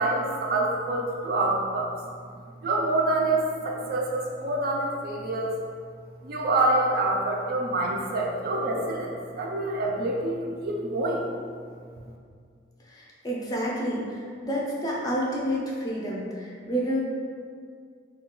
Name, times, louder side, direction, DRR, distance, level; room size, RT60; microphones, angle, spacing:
voice 1, 0.0-5.6 6.2-11.3, right 2 dB, 55° right, -1 dB, 0.4 m, -27 dB
voice 2, 12.8-17.0, equal, 20° left, -4 dB, 0.4 m, -29 dB
2.3 x 2.2 x 3.6 m, 2.1 s
head